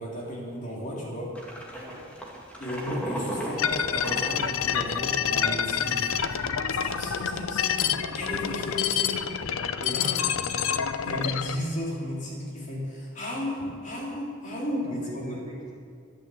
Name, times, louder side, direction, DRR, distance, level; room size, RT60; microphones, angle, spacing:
voice 1, 0.0-1.4 2.6-9.2 9.8-10.2 11.0-15.4, left 1 dB, 35° left, -4 dB, 3.2 m, -34 dB
sound 1, 1.3-5.2 5.5-5.6 5.9-6.3, equal, 5° left, 2.0 m, -36 dB
voice 2, 1.7-2.1 9.7-9.8 14.7-15.7, equal, 20° right, -4 dB, 2.6 m, -43 dB
sound 2, 3.6-11.6, left 8 dB, 85° left, 0.7 m, -28 dB
12.5 x 11.5 x 7.6 m, 2.3 s
head